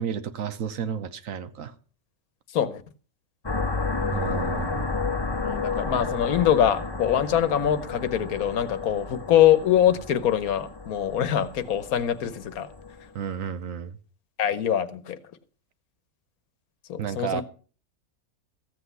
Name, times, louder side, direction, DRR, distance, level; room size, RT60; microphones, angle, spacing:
voice 1, 0.0-1.7 4.1-4.8 13.1-14.0 17.0-17.4, right 7 dB, 70° right, 1.2 m, -32 dB
sound 1, 3.4-13.0, left 4 dB, 20° left, 1.0 m, -32 dB
voice 2, 5.4-12.7 14.4-15.2 16.9-17.4, left 10 dB, 85° left, 1.3 m, -23 dB
14.0 x 8.2 x 5.5 m
omnidirectional pair, 1.5 m